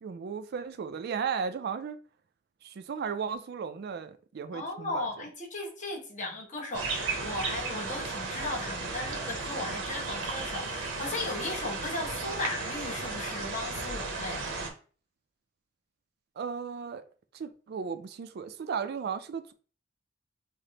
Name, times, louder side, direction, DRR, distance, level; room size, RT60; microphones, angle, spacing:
voice 1, 0.0-2.0 2.6-5.1 16.4-17.0 17.3-19.5, right 6 dB, 55° right, 0.3 m, -35 dB
voice 2, 4.5-14.5, left 2 dB, 40° left, 0.9 m, -36 dB
sound 1, 6.7-14.7, right 3 dB, 75° right, 0.7 m, -34 dB
4.9 x 2.1 x 2.8 m
head